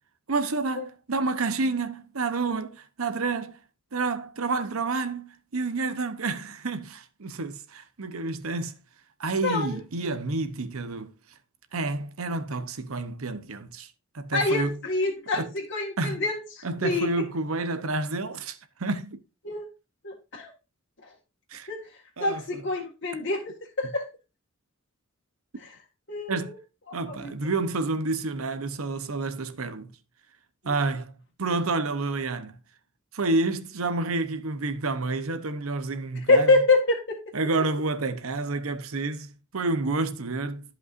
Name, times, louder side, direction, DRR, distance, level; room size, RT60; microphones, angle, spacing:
voice 1, 0.3-3.6 3.9-8.8 9.2-11.1 11.7-14.8 15.3-15.5 16.0-16.3 16.6-19.2 21.5-21.7 22.2-22.6 23.8-23.9 26.3-26.5 26.9-29.9 30.6-32.6 33.1-36.6 37.3-40.8, right 3 dB, 85° right, 0.9 m, -29 dB
voice 2, 9.4-9.7 14.3-16.4 16.8-17.1 19.4-19.6 20.0-20.5 21.7-21.8 22.2-24.1 26.1-26.5 27.2-27.3 36.3-37.2, left 2 dB, 55° left, 1.8 m, -25 dB
13.5 x 5.4 x 2.6 m
head